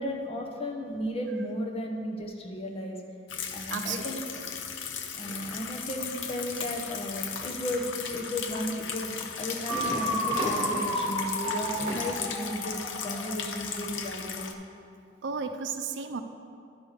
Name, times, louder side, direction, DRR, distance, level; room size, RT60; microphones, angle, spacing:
voice 1, 0.0-3.0 3.5-4.2 5.1-14.5, equal, 30° left, 1 dB, 0.9 m, -34 dB
sound 1, 3.3-14.5, left 7 dB, 75° left, 0.6 m, -36 dB
voice 2, 3.7-4.2 15.2-16.2, right 5 dB, 65° right, 8 dB, 0.5 m, -34 dB
sound 2, 5.2-5.6 9.3-12.2, equal, 35° right, 2.2 m, -37 dB
sound 3, 9.7-13.5, equal, ahead, 2.1 m, -32 dB
11.5 x 4.9 x 4.9 m, 2.4 s
head